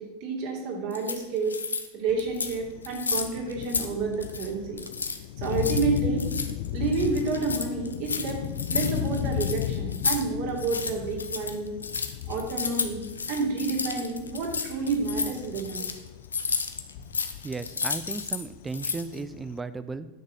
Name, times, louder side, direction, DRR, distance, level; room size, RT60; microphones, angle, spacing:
voice 1, 0.0-1.6 1.9-4.8 5.4-6.3 6.7-8.4 8.7-11.7 12.3-15.9, right 4 dB, 55° right, 0 dB, 3.1 m, -29 dB
sound 1, 0.9-1.9 2.2-2.6 2.8-4.5 4.8-10.2 10.5-18.4 18.7-19.2, left 5 dB, 85° left, 0.8 m, -32 dB
Thunder, 2.1-19.6, left 11 dB, 60° left, 0.5 m, -36 dB
voice 2, 17.4-20.1, right 3 dB, 15° right, 13 dB, 0.7 m, -35 dB
10.5 x 6.4 x 6.5 m, 1.0 s
figure-of-eight pair, 85°, 0 cm